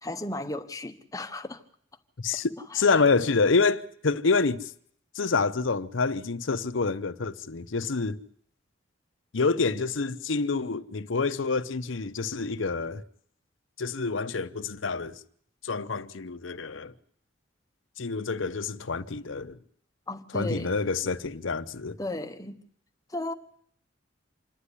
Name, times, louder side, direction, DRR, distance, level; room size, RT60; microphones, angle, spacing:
voice 1, 0.0-1.6 2.3-2.4 2.7-2.9 20.1-20.8 22.0-22.6 23.1-23.3, left 1 dB, 15° left, 1.0 m, -35 dB
voice 2, 2.2-4.7 5.1-8.2 9.3-13.0 13.8-15.2 15.6-16.9 18.0-19.6 20.3-22.0, left 4 dB, 80° left, 0.8 m, -27 dB
26.5 x 10.0 x 9.9 m
head